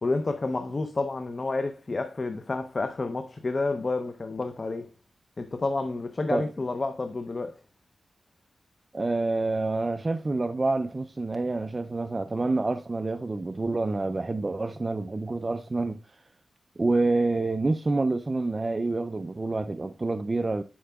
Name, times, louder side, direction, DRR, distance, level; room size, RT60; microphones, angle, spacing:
voice 1, 0.0-4.9 5.4-7.6, left 3 dB, 40° left, 0.5 m, -30 dB
voice 2, 8.9-16.0 16.8-20.6, right 3 dB, 30° right, 0.3 m, -27 dB
10.0 x 4.7 x 2.2 m
wide cardioid pair, 105°, 0 cm